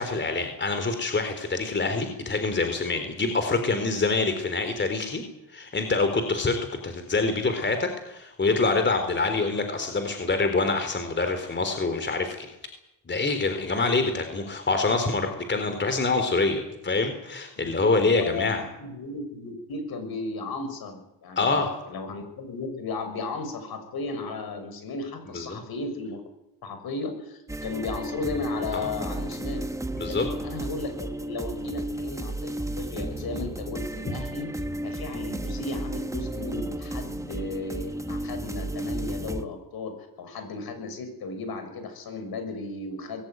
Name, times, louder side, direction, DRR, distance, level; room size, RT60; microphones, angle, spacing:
voice 1, 0.0-5.2 5.5-12.5 13.1-18.6 21.4-21.8 25.3-25.6 28.7-28.9 30.0-30.3 34.1-34.2, left 3 dB, 25° left, 7 dB, 3.9 m, -26 dB
voice 2, 17.6-26.2 26.6-29.6 30.1-43.2, left 3 dB, 60° left, 8 dB, 6.5 m, -35 dB
sound 1, 27.5-39.4, right 1 dB, 5° right, 1.4 m, -33 dB
21.5 x 17.0 x 9.5 m, 0.89 s
cardioid pair, 100°, 41 cm